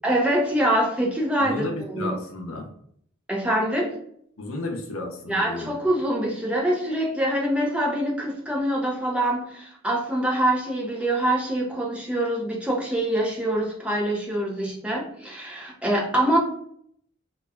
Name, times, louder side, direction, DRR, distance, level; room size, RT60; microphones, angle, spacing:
voice 1, 0.0-2.1 3.3-4.0 5.3-16.4, right 1 dB, 5° right, -2 dB, 0.4 m, -24 dB
voice 2, 1.4-2.7 4.4-5.7, left 2 dB, 85° left, 4 dB, 0.6 m, -33 dB
3.0 x 2.3 x 2.2 m, 0.66 s
head